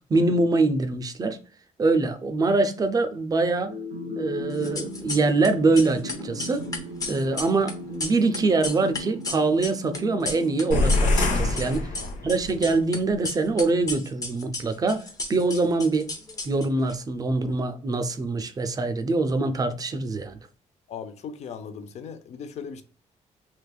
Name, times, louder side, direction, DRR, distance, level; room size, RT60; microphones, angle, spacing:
voice 1, 0.1-1.4 1.8-3.7 4.2-6.7 7.1-11.9 12.2-16.1 16.4-20.4, right 3 dB, 30° right, 0.5 m, -24 dB
sound 1, 3.7-12.4, left 1 dB, 85° right, 0.8 m, -37 dB
sound 2, 4.5-5.5 5.7-11.3 11.5-13.0 13.2-16.9, left 3 dB, 30° left, 0.8 m, -34 dB
sound 3, 10.7-12.6, left 2 dB, 85° left, 0.9 m, -23 dB
voice 2, 20.9-22.8, left 6 dB, 60° left, 0.5 m, -38 dB
3.3 x 2.9 x 2.3 m
cardioid pair, 115°, 13 cm